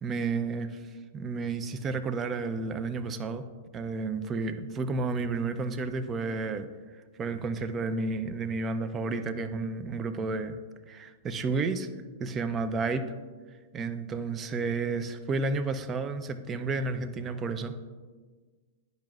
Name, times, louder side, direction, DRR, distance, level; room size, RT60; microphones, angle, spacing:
voice 1, 0.0-0.8 1.1-3.5 3.7-6.7 7.2-10.6 10.9-11.9 12.2-13.0 13.7-17.7, right 3 dB, 25° right, 10 dB, 0.5 m, -31 dB
10.5 x 5.3 x 2.4 m, 1.4 s
figure-of-eight pair, 100°, 0 cm